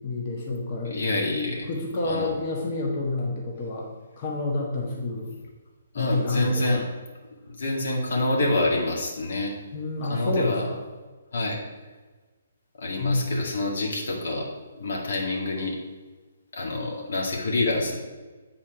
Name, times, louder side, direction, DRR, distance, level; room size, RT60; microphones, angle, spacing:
voice 1, 0.0-1.0 1.7-3.9 4.2-5.3 5.9-6.8 9.7-10.8 13.0-13.3, left 2 dB, 35° left, -2 dB, 1.4 m, -28 dB
voice 2, 0.8-1.7 2.0-2.3 5.9-6.8 7.5-9.5 10.0-10.6 11.3-11.6 12.8-14.5 14.7-15.8 16.5-17.9, left 2 dB, 65° left, -1 dB, 2.0 m, -27 dB
8.6 x 4.3 x 4.8 m, 1.3 s
figure-of-eight pair, 135°, 0 cm